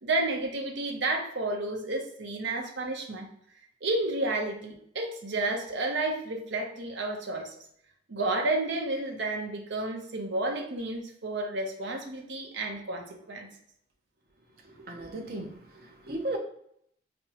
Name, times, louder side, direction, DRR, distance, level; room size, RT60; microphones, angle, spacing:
voice 1, 0.0-3.3 3.8-7.5 8.1-13.5, right 2 dB, 80° right, 2 dB, 0.8 m, -31 dB
voice 2, 14.6-16.4, right 1 dB, 55° right, 2 dB, 0.7 m, -36 dB
5.1 x 2.1 x 2.9 m, 0.69 s
head